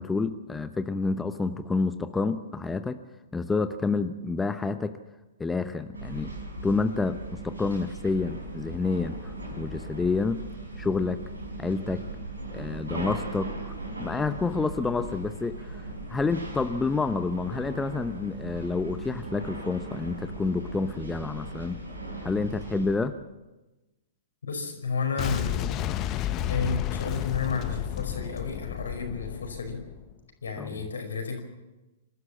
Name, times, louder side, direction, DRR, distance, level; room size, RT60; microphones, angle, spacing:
voice 1, 0.0-3.0 3.3-5.0 5.4-6.3 6.6-10.5 10.8-11.2 11.6-12.1 12.5-13.5 14.0-21.8 22.2-23.1 30.6-30.8, left 4 dB, 10° left, 10 dB, 0.8 m, -29 dB
sound 1, 5.9-23.0, right 1 dB, 85° right, 5.5 m, -38 dB
voice 2, 24.4-25.7 26.0-29.8 30.4-31.4, left 5 dB, 75° left, 4 dB, 5.2 m, -32 dB
Boom, 25.2-30.1, left 12 dB, 30° left, 1.0 m, -32 dB
27.0 x 13.0 x 7.4 m, 1.1 s
figure-of-eight pair, 115°, 0 cm